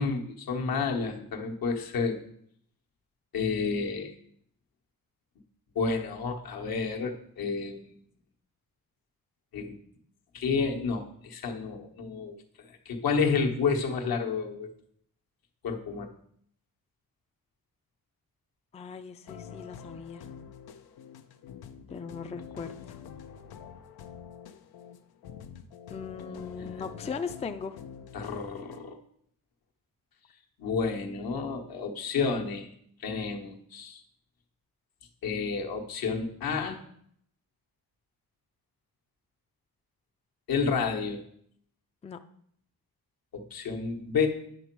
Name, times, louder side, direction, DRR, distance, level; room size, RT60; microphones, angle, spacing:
voice 1, 0.0-2.2 3.3-4.1 5.7-7.8 9.5-9.8 10.3-12.4 12.7-14.7 15.6-16.1 26.6-26.7 27.0-27.1 28.1-29.0 30.6-32.7 33.0-34.0 35.2-36.8 40.5-41.2 43.3-44.3, left 5 dB, 70° left, 2 dB, 1.3 m, -30 dB
voice 2, 18.7-20.3 21.9-23.0 25.9-27.8 42.0-42.2, left 5 dB, 20° left, 8 dB, 0.4 m, -38 dB
sound 1, 19.3-28.8, left 8 dB, 90° left, 0.7 m, -46 dB
9.9 x 6.0 x 4.6 m, 0.67 s
cardioid pair, 115°, 36 cm